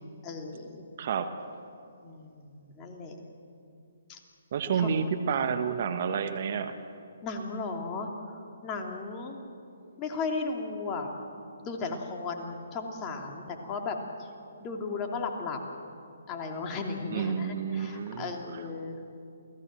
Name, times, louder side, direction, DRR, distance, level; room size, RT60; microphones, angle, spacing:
voice 1, 0.2-0.8 2.0-3.2 4.1-4.2 4.7-4.9 7.2-9.4 10.0-11.3 11.6-15.6 16.3-19.0, left 4 dB, 25° left, 2 dB, 3.0 m, -36 dB
voice 2, 4.5-6.7 17.1-18.3, right 7 dB, 50° right, 9 dB, 1.5 m, -29 dB
29.0 x 17.5 x 7.7 m, 2.5 s
figure-of-eight pair, 135°, 0 cm